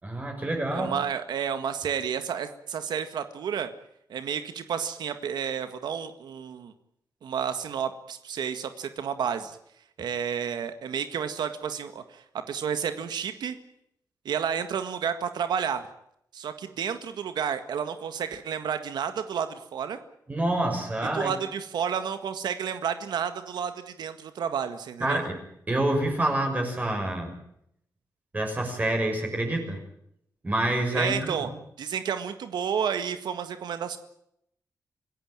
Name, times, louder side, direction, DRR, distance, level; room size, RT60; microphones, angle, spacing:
voice 1, 0.0-0.9 20.3-21.3 25.0-25.4 25.7-27.3 28.3-29.8 30.4-31.4, right 1 dB, 20° right, 3 dB, 6.3 m, -27 dB
voice 2, 0.7-3.7 4.1-6.7 7.2-9.6 10.0-13.6 14.3-15.8 16.3-20.0 21.1-25.2 30.9-31.5 31.8-34.0, right 7 dB, 90° right, 9 dB, 1.8 m, -31 dB
26.5 x 16.0 x 9.0 m, 0.75 s
wide cardioid pair, 130°, 7 cm